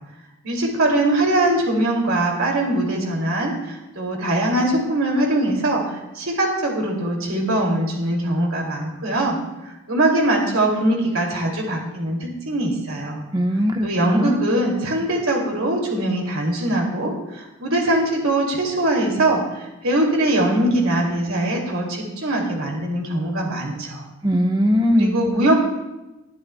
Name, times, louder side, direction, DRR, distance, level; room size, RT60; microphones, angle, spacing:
voice 1, 0.4-9.4 9.6-13.2 13.8-24.0 25.0-25.5, right 1 dB, 80° right, -1 dB, 2.5 m, -22 dB
voice 2, 13.3-14.4 24.2-25.2, equal, 20° right, 4 dB, 0.9 m, -20 dB
20.5 x 12.0 x 2.2 m, 1.0 s
head